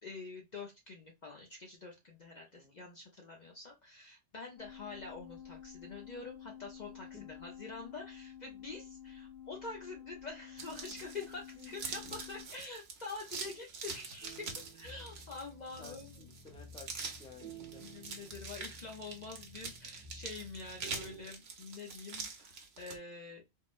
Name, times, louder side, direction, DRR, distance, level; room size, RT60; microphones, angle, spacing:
voice 1, 0.0-11.4 11.7-14.5 14.7-16.4 17.8-23.4, left 3 dB, 50° left, 1 dB, 0.6 m, -46 dB
voice 2, 2.5-2.8 7.1-7.2 11.2-11.3 11.6-11.7 15.8-16.9 17.2-17.8, left 5 dB, 5° left, 2 dB, 0.5 m, -53 dB
sound 1, 4.6-12.5, left 9 dB, 25° left, 1.0 m, -51 dB
sound 2, 10.6-23.0, right 4 dB, 70° right, 1.0 m, -45 dB
sound 3, 14.2-21.2, right 2 dB, 50° right, 0.8 m, -53 dB
3.5 x 2.1 x 2.4 m, 0.22 s
omnidirectional pair, 1.2 m